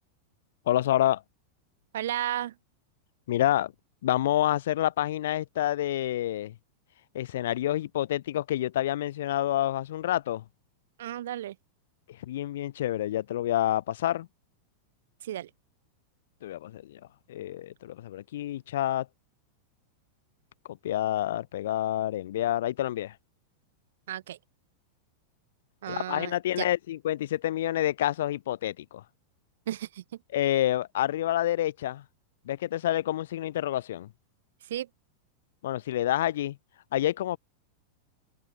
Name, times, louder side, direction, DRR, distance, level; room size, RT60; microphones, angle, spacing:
voice 1, 0.7-1.2 3.3-3.7 4.0-6.5 7.1-10.4 12.2-14.3 16.4-17.0 17.3-19.1 20.8-23.1 25.9-29.0 30.3-32.0 32.4-34.1 35.6-36.6 36.9-37.4, left 13 dB, 60° left, 1.7 m, -28 dB
voice 2, 1.9-2.5 11.0-11.5 15.2-15.5 24.1-24.4 25.8-26.7 29.7-30.0 34.7-34.9, right 12 dB, 60° right, 4.9 m, -33 dB
figure-of-eight pair, 90°, 0 cm